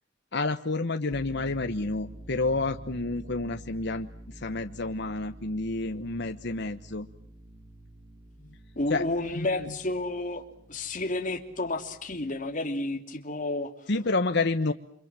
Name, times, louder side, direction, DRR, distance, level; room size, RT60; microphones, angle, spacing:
voice 1, 0.3-7.1 8.9-9.0 9.3-9.7 13.9-14.7, left 3 dB, 65° left, 8 dB, 1.1 m, -29 dB
sound 1, 1.1-12.5, right 1 dB, 45° right, 5.2 m, -48 dB
voice 2, 8.7-13.7, left 2 dB, 45° left, 5 dB, 3.0 m, -31 dB
29.5 x 25.5 x 7.5 m, 0.65 s
head